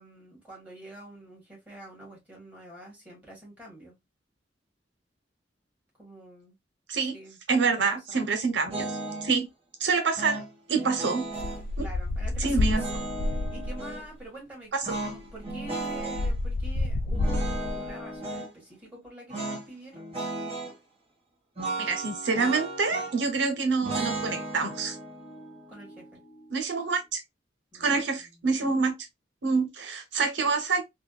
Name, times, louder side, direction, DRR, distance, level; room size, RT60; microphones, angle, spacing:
voice 1, 0.0-3.9 6.0-6.6 7.0-7.4 7.7-8.0 11.8-14.7 15.0-20.0 25.7-26.2 27.7-28.0 28.3-28.4, right 1 dB, 10° right, 1.7 m, -46 dB
voice 2, 7.5-8.9 9.2-9.5 9.8-10.4 10.7-11.2 11.8-11.9 12.4-12.8 14.7-14.8 21.8-25.0 26.5-27.2 27.8-28.9 29.4-30.8, right 4 dB, 80° right, 0.8 m, -26 dB
sound 1, 8.7-9.4 10.2-11.6 12.6-14.0 14.8-16.3 17.1-18.5 19.3-19.7 19.9-20.7 21.6-23.3 23.8-26.9, right 2 dB, 35° right, 1.6 m, -35 dB
sound 2, 11.4-13.9 14.9-15.0 15.3-17.9, left 2 dB, 55° left, 0.3 m, -29 dB
3.6 x 2.2 x 2.3 m
head